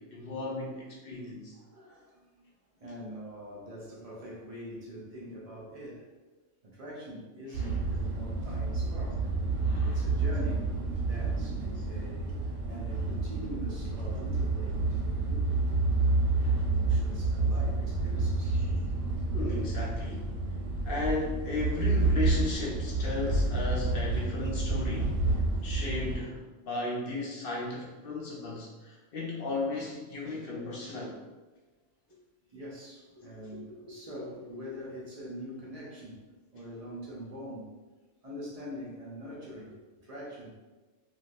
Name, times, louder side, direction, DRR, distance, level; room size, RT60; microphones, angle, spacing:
voice 1, 0.0-1.5 7.5-7.7 9.6-10.0 11.7-11.9 16.4-16.6 18.5-18.8 19.3-20.6 20.8-25.2 25.6-31.2, left 3 dB, 60° left, -3 dB, 0.6 m, -35 dB
voice 2, 1.5-2.4 2.8-6.1 6.6-9.3 9.8-10.6 10.9-12.4 12.7-15.6 16.0-16.2 16.6-18.7 32.5-36.2 36.5-37.7 38.2-40.5, equal, 45° right, -5 dB, 0.5 m, -43 dB
sound 1, 7.5-26.2, right 3 dB, 70° right, 0.8 m, -29 dB
3.2 x 2.3 x 2.5 m, 1.2 s
omnidirectional pair, 1.3 m